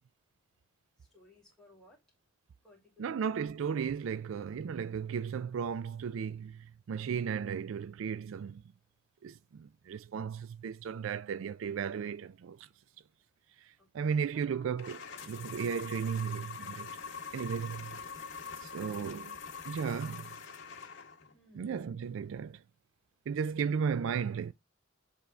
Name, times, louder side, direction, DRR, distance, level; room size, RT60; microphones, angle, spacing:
voice 1, 1.0-2.0 2.6-3.3 13.8-14.7 19.7-20.2 20.8-21.1 21.3-21.8, left 2 dB, ahead, 2.5 m, -63 dB
voice 2, 3.0-8.6 9.2-12.7 13.6-16.9 17.3-18.0 18.6-19.4 19.7-20.3 21.5-22.6 23.3-24.5, right 6 dB, 75° right, 0.3 m, -35 dB
sound 1, 14.8-21.3, left 6 dB, 65° left, 1.7 m, -44 dB
7.4 x 3.4 x 4.5 m
head